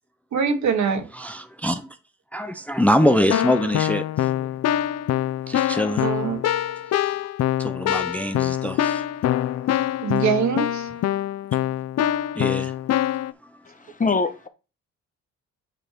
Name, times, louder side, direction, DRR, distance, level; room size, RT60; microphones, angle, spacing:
voice 1, 0.3-1.0 6.0-6.4 10.0-10.8, right 6 dB, 70° right, 1.6 m, -23 dB
voice 2, 1.1-2.0 2.3-4.5 5.5-6.1 7.0-7.2 7.6-9.1 9.6-10.0 12.3-12.8 13.4-13.5, equal, 5° left, 0.5 m, -24 dB
Keyboard (musical), 3.0-13.3, left 12 dB, 60° left, 0.5 m, -24 dB
voice 3, 13.7-14.5, left 4 dB, 25° left, 0.9 m, -24 dB
8.9 x 3.2 x 4.4 m
cardioid pair, 90°, 30 cm